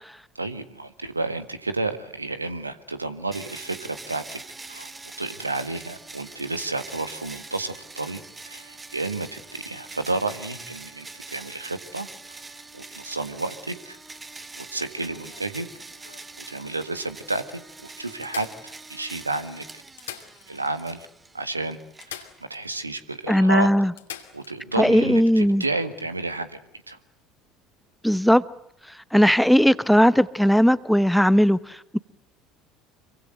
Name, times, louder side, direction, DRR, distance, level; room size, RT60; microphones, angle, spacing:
voice 1, 0.4-4.4 4.7-4.9 5.2-8.2 8.5-12.1 12.7-14.0 14.6-15.7 16.0-17.4 17.8-18.5 18.9-19.6 20.0-20.2 20.5-21.1 21.3-21.8 22.1-23.7 24.3-26.6 26.9-27.0, right 2 dB, 85° right, 1.6 m, -31 dB
sound 1, 3.3-22.7, right 3 dB, 20° right, 2.1 m, -43 dB
sound 2, 14.9-16.3 17.0-17.1 17.4-17.5 18.2-19.2 19.8-20.8 21.1-21.2 22.0-22.9 23.2-23.3 24.0-24.5 26.5-26.7, left 10 dB, 70° left, 2.7 m, -43 dB
voice 2, 23.3-23.9 24.8-25.6 28.0-28.4 29.1-32.0, equal, ahead, 0.9 m, -18 dB
26.5 x 24.0 x 7.8 m
figure-of-eight pair, 65°, 0 cm